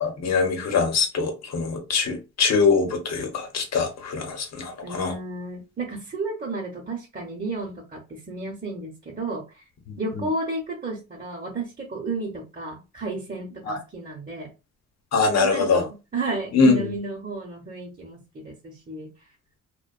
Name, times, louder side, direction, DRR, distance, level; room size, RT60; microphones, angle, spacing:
voice 1, 0.0-5.1 9.9-10.2 13.7-13.8 15.1-15.8 16.5-16.9, left 4 dB, 60° left, 1.0 m, -23 dB
voice 2, 4.8-9.6 10.0-14.5 15.3-19.1, right 2 dB, 30° right, 0.8 m, -32 dB
2.4 x 2.2 x 2.4 m
cardioid pair, 90°, 30 cm